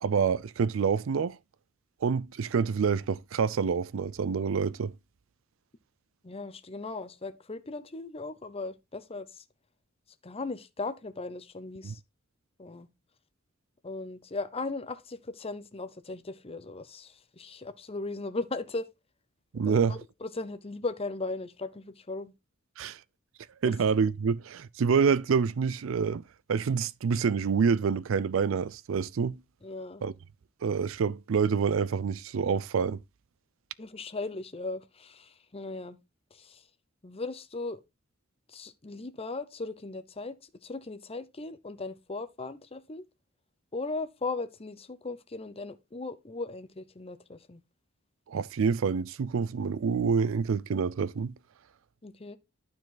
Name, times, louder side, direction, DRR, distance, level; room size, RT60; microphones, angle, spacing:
voice 1, 0.0-1.4 2.0-4.9 11.8-11.9 19.5-20.0 22.8-23.0 23.6-26.2 26.5-29.4 30.0-30.1 30.6-33.0 48.3-51.3, right 6 dB, 70° right, 0.4 m, -27 dB
voice 2, 6.2-9.4 10.2-12.0 12.6-12.9 13.8-18.9 19.7-22.3 23.6-23.7 29.6-30.0 33.8-36.0 36.3-36.6 37.0-37.8 38.5-40.3 40.6-43.0 43.7-47.6 52.0-52.4, left 3 dB, 30° left, 0.8 m, -37 dB
12.0 x 4.6 x 3.9 m
head